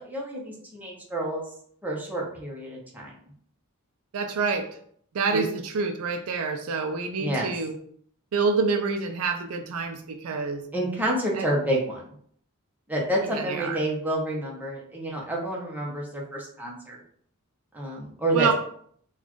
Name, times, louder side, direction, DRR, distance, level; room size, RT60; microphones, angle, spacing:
voice 1, 0.0-1.4 1.8-3.1 5.3-5.4 7.2-7.5 10.7-12.0 12.9-17.0 17.7-18.5, right 1 dB, 10° right, -3 dB, 0.8 m, -29 dB
voice 2, 4.1-4.7 5.1-7.8 8.3-10.6 11.4-11.5 13.3-13.8 18.3-18.5, right 4 dB, 70° right, 6 dB, 0.4 m, -27 dB
4.0 x 2.3 x 3.0 m, 0.63 s
head